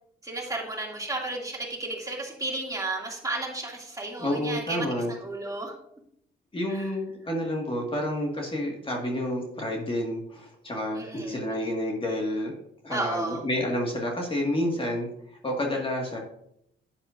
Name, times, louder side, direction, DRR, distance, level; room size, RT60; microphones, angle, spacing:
voice 1, 0.2-5.7 6.7-6.8 10.9-11.6 12.9-13.4, right 2 dB, 15° right, -2 dB, 2.5 m, -33 dB
voice 2, 4.2-5.1 6.5-12.5 12.8-15.1 15.4-16.2, left 1 dB, 25° left, 0 dB, 1.9 m, -29 dB
10.5 x 8.9 x 2.6 m, 0.75 s
cardioid pair, 90°, 20 cm